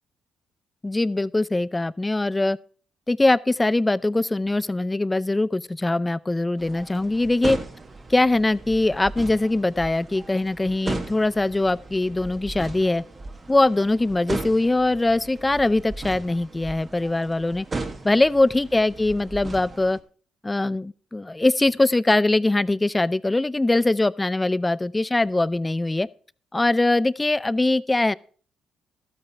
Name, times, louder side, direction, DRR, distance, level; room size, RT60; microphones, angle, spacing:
voice 1, 0.8-2.6 3.1-7.6 8.1-13.0 13.5-17.6 18.0-20.0 20.4-26.1 26.5-28.2, left 2 dB, 15° left, 0.5 m, -22 dB
sound 1, 6.6-20.0, right 3 dB, 30° right, 1.8 m, -37 dB
13.0 x 8.9 x 4.3 m
cardioid pair, 80°, 0 cm